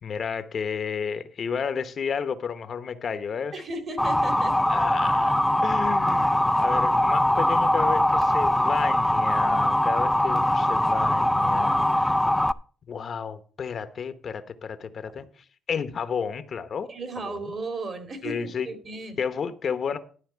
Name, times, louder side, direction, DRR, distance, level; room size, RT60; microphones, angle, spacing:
voice 1, 0.0-3.5 4.7-12.2 12.9-15.3 15.7-16.9 17.2-17.5 18.2-18.7 19.2-20.0, left 6 dB, 55° left, 0.9 m, -32 dB
voice 2, 3.5-4.6 16.9-19.2, right 3 dB, 45° right, 2.6 m, -35 dB
Motor vehicle (road) / Siren, 4.0-12.5, left 1 dB, 5° left, 0.4 m, -22 dB
12.0 x 4.2 x 8.1 m
cardioid pair, 90°, 0 cm